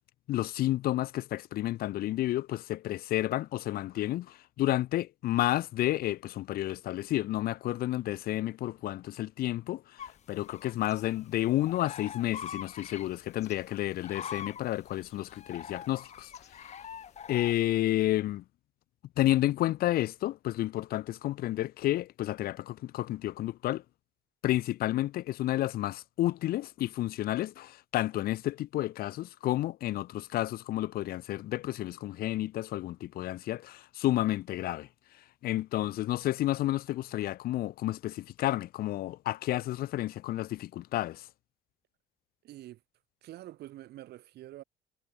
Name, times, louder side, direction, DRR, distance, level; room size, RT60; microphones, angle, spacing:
voice 1, 0.3-16.3 16.6-16.7 17.3-18.4 19.2-23.8 24.4-34.9 35.4-41.3, left 15 dB, 60° left, 0.5 m, -31 dB
sound 1, 10.0-17.6, left 8 dB, 40° left, 1.6 m, -44 dB
voice 2, 42.4-42.8 43.2-44.6, right 14 dB, 75° right, 7.7 m, -46 dB
cardioid pair, 110°, 17 cm